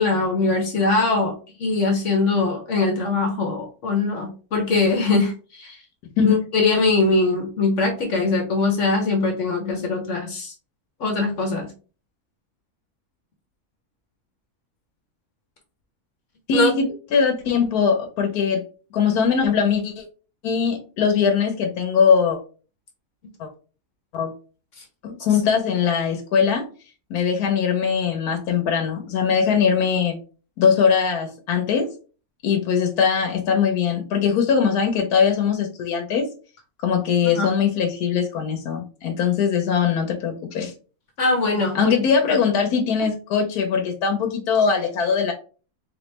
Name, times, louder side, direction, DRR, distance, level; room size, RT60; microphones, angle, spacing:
voice 1, 0.0-1.3 1.6-5.8 6.2-10.5 11.0-11.7 16.5-16.7 37.3-37.5 41.2-41.9, left 3 dB, 60° left, 2 dB, 1.1 m, -22 dB
voice 2, 16.5-18.6 18.9-20.0 20.4-22.4 23.4-23.5 24.1-24.3 25.0-26.7 27.1-30.2 30.6-31.9 32.4-36.3 36.8-40.7 41.7-45.3, left 6 dB, 85° left, 4 dB, 1.2 m, -21 dB
3.8 x 3.0 x 3.2 m, 0.36 s
omnidirectional pair, 1.6 m